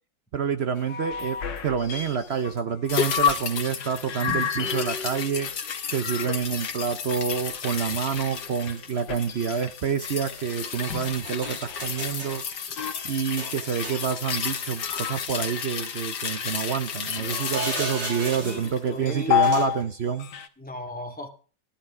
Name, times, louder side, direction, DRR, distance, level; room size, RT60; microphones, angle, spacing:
voice 1, 0.3-5.5 5.9-12.4 13.0-20.3, right 7 dB, 60° right, 10 dB, 0.6 m, -28 dB
sound 1, 0.8-3.5 3.8-6.9 7.4-12.0 12.7-15.8 16.5-18.0 18.4-19.8 20.1-20.5, left 8 dB, 85° left, 1.9 m, -31 dB
sound 2, 2.8-2.9 3.9-4.0 5.0-5.2 8.5-8.9 9.4-10.6 11.0-12.4 13.4-14.4 14.8-14.9 16.6-18.8 19.4-19.9, right 1 dB, 90° right, 6.3 m, -36 dB
sound 3, 2.9-19.4 19.7-19.8, left 7 dB, 70° left, 1.8 m, -33 dB
voice 2, 18.4-19.4 20.6-21.3, left 1 dB, 5° left, 2 dB, 1.8 m, -36 dB
13.5 x 11.5 x 4.8 m, 0.38 s
omnidirectional pair, 1.9 m